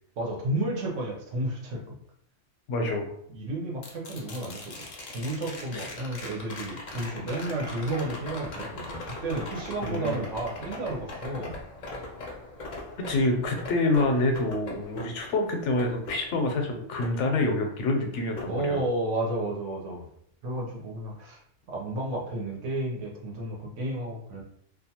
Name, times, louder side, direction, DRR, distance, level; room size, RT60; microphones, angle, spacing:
voice 1, 0.2-1.8 3.3-4.7 5.1-11.6 18.4-20.1 20.4-21.4 21.7-24.4, right 1 dB, 85° right, -1 dB, 1.1 m, -32 dB
voice 2, 2.7-3.1 5.7-5.9 9.8-10.3 13.1-18.8, left 2 dB, 80° left, 3 dB, 0.9 m, -27 dB
sound 1, 3.8-17.9 18.4-19.4 21.6-21.7, left 2 dB, 50° left, 0.5 m, -41 dB
2.5 x 2.3 x 2.8 m, 0.66 s
omnidirectional pair, 1.2 m